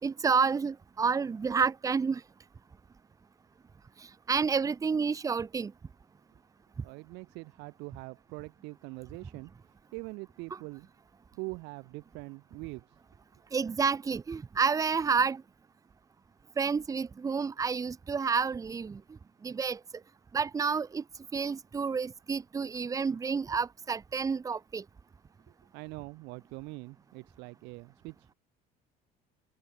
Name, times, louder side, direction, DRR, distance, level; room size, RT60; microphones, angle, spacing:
voice 1, 0.0-2.2 4.3-5.7 13.5-15.4 16.6-19.0 19.4-19.8 20.3-21.0 21.3-24.8, right 5 dB, 20° right, 1.8 m, -29 dB
voice 2, 6.8-9.5 9.9-10.9 11.3-13.0 25.7-28.4, right 26 dB, 85° right, 5.7 m, -43 dB
cardioid pair, 155°, 17 cm